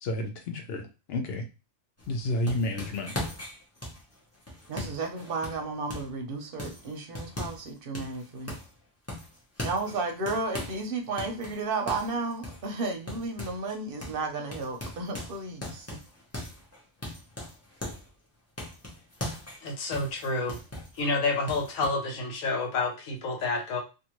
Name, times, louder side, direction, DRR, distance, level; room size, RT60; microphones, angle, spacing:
voice 1, 0.0-1.4 2.1-3.2, left 1 dB, 55° left, 0.8 m, -31 dB
sound 1, 2.0-6.2 6.6-7.7 7.9-8.8 9.1-10.8 11.2-13.8 14.0-14.2 14.5-18.1 18.6-21.0 21.5-21.9, left 1 dB, 15° left, 0.6 m, -39 dB
voice 2, 4.7-8.6 9.6-16.0, right 3 dB, 55° right, 0.7 m, -33 dB
voice 3, 19.6-20.6 21.0-23.8, left 3 dB, 80° left, 1.2 m, -29 dB
2.6 x 2.5 x 2.9 m
omnidirectional pair, 1.4 m